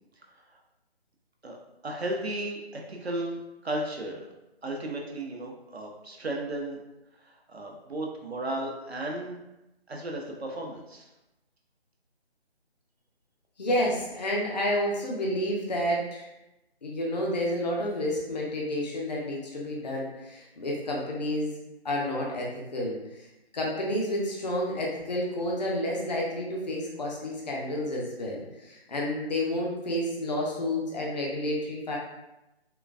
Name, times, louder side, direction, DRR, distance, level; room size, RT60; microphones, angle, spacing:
voice 1, 1.8-4.2 4.6-6.8 7.3-9.4 9.9-11.1, right 1 dB, 75° right, 0 dB, 0.7 m, -34 dB
voice 2, 13.6-16.3 16.8-21.6 21.8-23.0 23.5-32.0, left 1 dB, 40° left, -2 dB, 0.6 m, -30 dB
3.7 x 2.2 x 2.4 m, 0.94 s
figure-of-eight pair, 150°, 32 cm